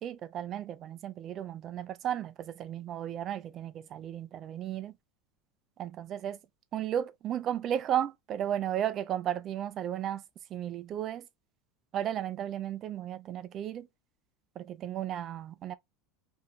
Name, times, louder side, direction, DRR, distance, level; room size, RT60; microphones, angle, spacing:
voice 1, 0.0-5.0 5.8-6.4 6.7-10.2 10.5-11.3 11.9-13.9 14.6-15.7, right 10 dB, 30° right, 0.3 m, -34 dB
2.6 x 2.2 x 2.9 m
supercardioid pair, 155°, 0 cm